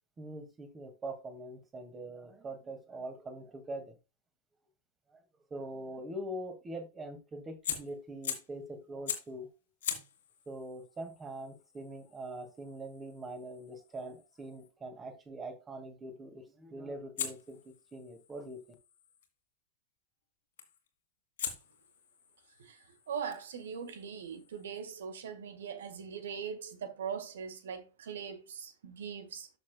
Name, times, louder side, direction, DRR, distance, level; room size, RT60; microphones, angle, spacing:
voice 1, 0.2-3.9 5.1-5.2 5.5-9.5 10.5-18.6, right 1 dB, 20° right, 2.3 m, -43 dB
Fire, 7.6-8.6 9.1-9.4 9.8-14.7 17.2-19.3 20.6-20.9 21.4-24.8, left 8 dB, 60° left, 2.0 m, -43 dB
voice 2, 22.6-29.5, right 7 dB, 60° right, 1.7 m, -41 dB
13.0 x 6.6 x 2.3 m
figure-of-eight pair, 90°, 0 cm